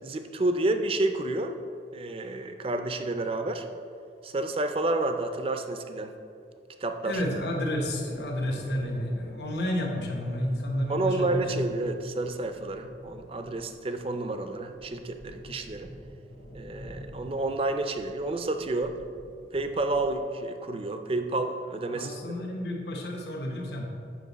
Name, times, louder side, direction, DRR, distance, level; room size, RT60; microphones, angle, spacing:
voice 1, 0.0-1.6 1.9-3.7 4.2-6.2 6.8-7.2 10.9-15.9 16.5-18.9 19.5-22.1, right 2 dB, 30° right, 7 dB, 0.4 m, -30 dB
voice 2, 7.0-11.7 21.9-23.8, left 1 dB, 65° left, 1 dB, 1.0 m, -31 dB
sound 1, 7.1-20.1, equal, 85° left, 1.5 m, -48 dB
7.7 x 5.7 x 4.0 m, 2.4 s
head